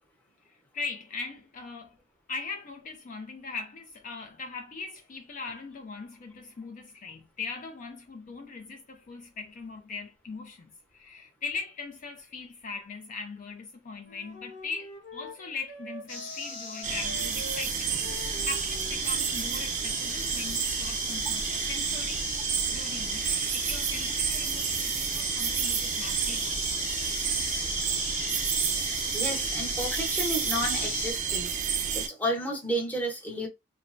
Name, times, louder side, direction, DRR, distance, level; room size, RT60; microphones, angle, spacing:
voice 1, 0.7-2.0 2.3-18.0 18.4-26.8, left 4 dB, 45° left, 0.4 m, -40 dB
Wind instrument woodwind instrument, 14.0-19.4, left 1 dB, 60° left, 1.0 m, -45 dB
sound 1, 16.1-31.1, left 3 dB, 80° left, 1.0 m, -37 dB
sound 2, 16.8-32.1, right 7 dB, 40° right, 0.4 m, -30 dB
voice 2, 29.1-31.5 31.9-33.5, equal, 10° left, 0.9 m, -32 dB
3.0 x 2.1 x 2.6 m
head